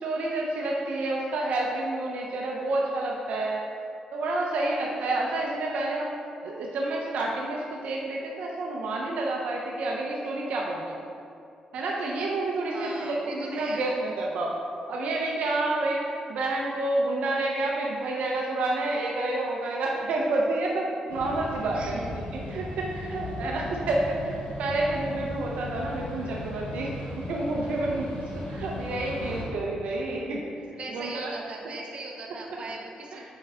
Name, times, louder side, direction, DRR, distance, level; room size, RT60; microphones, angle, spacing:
voice 1, 0.0-3.6 4.1-6.1 6.4-11.0 11.7-14.6 14.9-16.0 16.3-28.2 28.5-30.5 30.9-31.3 33.1-33.2, right 2 dB, 85° right, -2 dB, 0.6 m, -29 dB
voice 2, 12.7-13.9 21.7-22.1 30.8-33.2, right 3 dB, 50° right, 0 dB, 0.9 m, -39 dB
sound 1, 21.1-29.4, left 1 dB, 80° left, 1.1 m, -37 dB
5.6 x 5.4 x 3.5 m, 2.6 s
cardioid pair, 105°, 2 cm